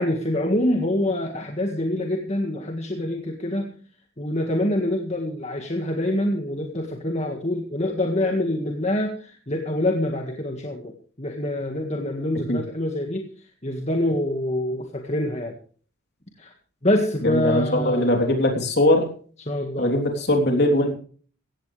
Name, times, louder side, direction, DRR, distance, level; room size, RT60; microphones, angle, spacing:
voice 1, 0.0-3.7 4.2-13.3 13.6-15.6 16.4-16.5 16.8-18.1 19.5-19.9, left 1 dB, 30° left, 3 dB, 1.8 m, -25 dB
voice 2, 17.2-19.1 19.8-21.0, left 1 dB, 50° left, 2 dB, 3.5 m, -20 dB
17.5 x 15.0 x 3.4 m, 0.42 s
head